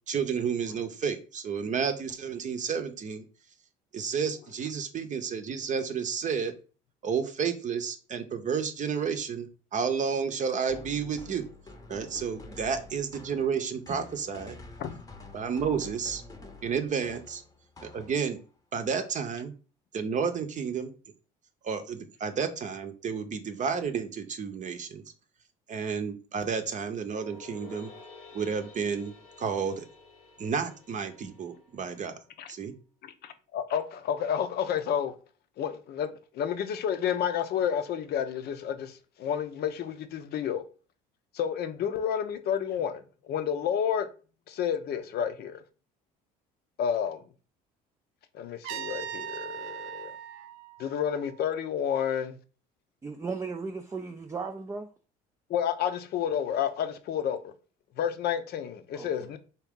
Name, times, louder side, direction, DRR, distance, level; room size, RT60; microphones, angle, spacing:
voice 1, 0.1-3.2 3.9-6.5 7.0-11.4 11.9-14.6 15.3-16.2 16.6-17.4 17.8-18.4 18.7-19.5 19.9-20.9 21.6-25.0 25.7-27.9 28.3-29.9 30.4-32.1 32.5-32.7, right 6 dB, 40° right, 0.7 m, -31 dB
sound 1, 10.7-18.5, left 2 dB, 20° left, 0.8 m, -48 dB
sound 2, 27.1-32.3, left 4 dB, 85° left, 1.1 m, -51 dB
voice 2, 33.0-35.1 35.6-40.6 41.3-44.1 44.5-45.6 46.8-47.2 48.3-50.1 50.8-52.4 55.5-57.5 58.0-59.4, left 8 dB, 60° left, 0.6 m, -30 dB
Trumpet, 48.6-51.6, right 9 dB, 80° right, 0.4 m, -40 dB
voice 3, 53.0-54.9 58.9-59.3, right 4 dB, 15° right, 0.4 m, -36 dB
3.5 x 2.8 x 3.6 m
supercardioid pair, 75°, 19 cm